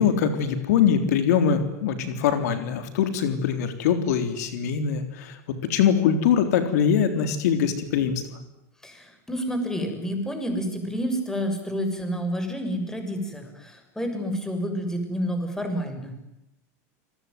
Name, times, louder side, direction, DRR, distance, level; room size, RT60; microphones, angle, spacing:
voice 1, 0.0-8.2, left 7 dB, 75° left, 9 dB, 3.7 m, -23 dB
voice 2, 8.8-16.2, equal, 5° left, 6 dB, 6.9 m, -29 dB
27.0 x 22.0 x 9.5 m, 0.87 s
supercardioid pair, 120°, 9 cm